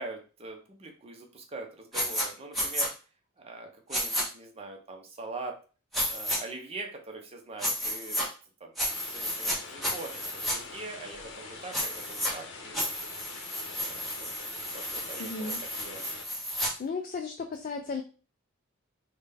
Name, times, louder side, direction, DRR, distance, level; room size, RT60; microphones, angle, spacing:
voice 1, 0.0-2.9 3.4-5.5 6.1-8.3 8.6-8.8 9.0-12.9 13.7-14.3 14.7-16.0, right 3 dB, 30° right, 2 dB, 0.7 m, -43 dB
sound 1, 1.9-2.3 2.5-2.9 3.9-4.2 5.9-6.4 7.6-8.3 8.8-9.6 9.8-10.6 11.7-12.3 12.7-16.7, equal, ahead, 1.1 m, -32 dB
sound 2, 8.8-16.2, left 4 dB, 60° left, 0.8 m, -44 dB
voice 2, 15.2-15.6 16.8-18.0, left 4 dB, 40° left, 4 dB, 0.3 m, -34 dB
3.8 x 2.2 x 3.4 m, 0.35 s
head